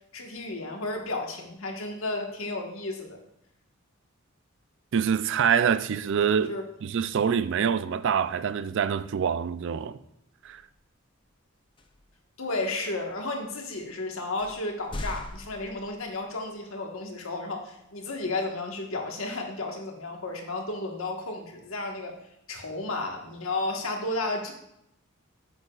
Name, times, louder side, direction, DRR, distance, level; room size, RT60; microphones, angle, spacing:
voice 1, 0.1-3.2 6.5-6.6 12.4-22.1 22.5-24.5, left 2 dB, 75° left, 1.5 m, -33 dB
voice 2, 4.9-6.5 6.8-10.0 10.4-10.6, right 7 dB, 60° right, 0.4 m, -25 dB
sound 1, 10.4-10.7 11.8-12.2 12.8-12.9 13.8-13.9 14.4-16.3, left 1 dB, 25° left, 0.5 m, -40 dB
9.9 x 8.1 x 2.4 m
head